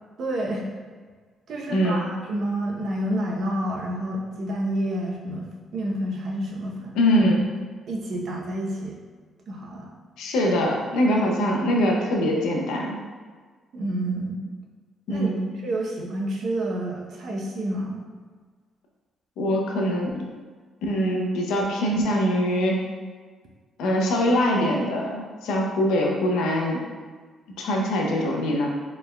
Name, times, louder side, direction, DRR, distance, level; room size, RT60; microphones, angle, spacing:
voice 1, 0.2-0.6 1.5-7.0 7.9-9.0 9.5-9.9 13.7-14.4 15.1-15.3 15.6-18.0, right 1 dB, 60° right, -1 dB, 0.7 m, -29 dB
voice 2, 1.7-2.1 6.9-7.5 10.2-13.0 15.1-15.4 19.4-20.2 20.8-22.8 23.8-26.8 27.6-28.8, equal, 85° left, -1 dB, 0.6 m, -23 dB
4.3 x 3.3 x 2.2 m, 1.5 s
cardioid pair, 90°, 0 cm